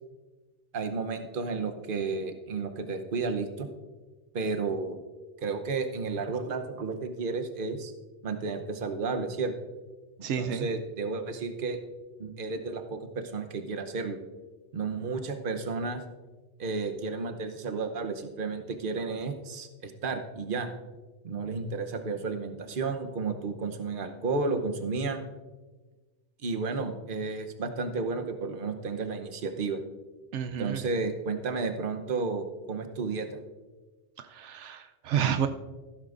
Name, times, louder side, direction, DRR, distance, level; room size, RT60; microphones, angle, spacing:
voice 1, 0.7-3.7 4.3-5.0 5.4-7.9 8.2-9.5 10.3-11.8 12.2-14.2 14.7-16.0 16.6-20.7 21.2-25.2 26.4-29.8 30.6-33.4, right 4 dB, 50° right, 6 dB, 1.0 m, -32 dB
voice 2, 10.2-10.7 30.3-30.8 34.2-35.5, right 8 dB, 80° right, 8 dB, 0.9 m, -30 dB
14.5 x 12.5 x 2.5 m, 1.3 s
omnidirectional pair, 1.2 m